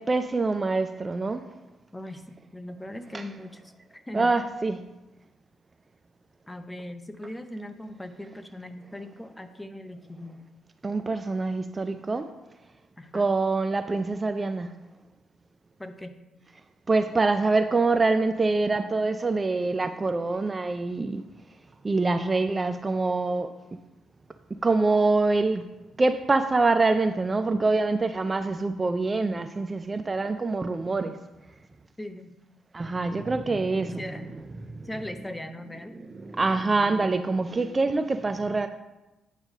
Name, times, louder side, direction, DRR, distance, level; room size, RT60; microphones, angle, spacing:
voice 1, 0.0-1.5 3.1-3.2 4.1-4.9 10.8-12.3 13.1-14.7 16.9-21.2 21.8-23.5 24.5-25.7 26.0-31.2 32.7-34.0 34.8-34.9 36.2-38.7, right 3 dB, 25° right, 0.4 m, -25 dB
voice 2, 1.9-4.3 6.5-10.4 13.0-13.3 15.8-16.1 32.0-32.4 33.8-34.3 34.8-36.0, left 1 dB, 10° left, 0.6 m, -39 dB
9.0 x 3.2 x 6.4 m
cardioid pair, 90°, 0 cm